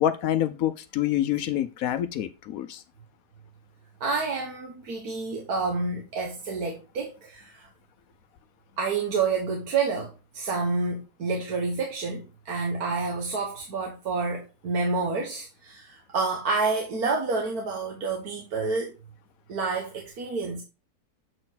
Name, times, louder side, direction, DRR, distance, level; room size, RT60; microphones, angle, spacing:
voice 1, 0.0-2.8, left 11 dB, 70° left, 0.9 m, -26 dB
voice 2, 4.0-7.7 8.8-18.9 19.5-20.6, right 4 dB, 60° right, 1.7 m, -29 dB
7.6 x 4.3 x 4.0 m
omnidirectional pair, 1.8 m